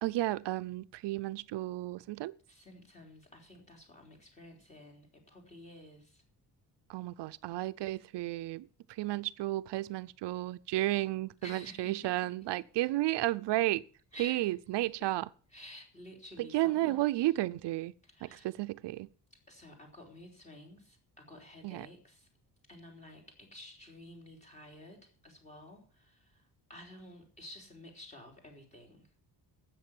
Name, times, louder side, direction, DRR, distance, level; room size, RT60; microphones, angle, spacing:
voice 1, 0.0-2.3 6.9-13.8 14.2-15.3 16.4-17.9 18.2-19.1 21.6-21.9, right 16 dB, 85° right, 0.6 m, -33 dB
voice 2, 2.5-6.2 11.4-12.3 14.1-14.5 14.8-15.1 15.5-17.3 18.0-18.5 19.5-22.3 22.7-29.1, left 1 dB, 15° left, 3.6 m, -52 dB
12.5 x 8.4 x 7.1 m
cardioid pair, 175°, 41 cm